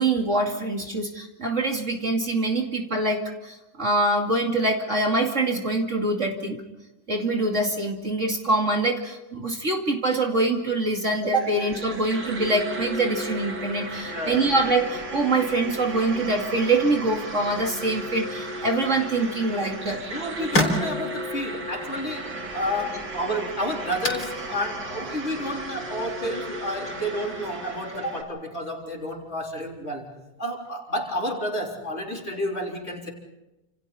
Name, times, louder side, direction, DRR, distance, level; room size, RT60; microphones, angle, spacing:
voice 1, 0.0-6.6 7.1-20.1, right 2 dB, 40° right, 2 dB, 2.7 m, -24 dB
sound 1, 11.2-28.2, right 1 dB, 65° right, 3.1 m, -35 dB
voice 2, 14.1-14.5 20.1-30.1 30.4-33.1, equal, 35° left, 0 dB, 4.2 m, -30 dB
sound 2, 19.6-26.9, left 1 dB, 55° left, 4.3 m, -33 dB
29.5 x 28.0 x 4.3 m, 0.96 s
omnidirectional pair, 2.0 m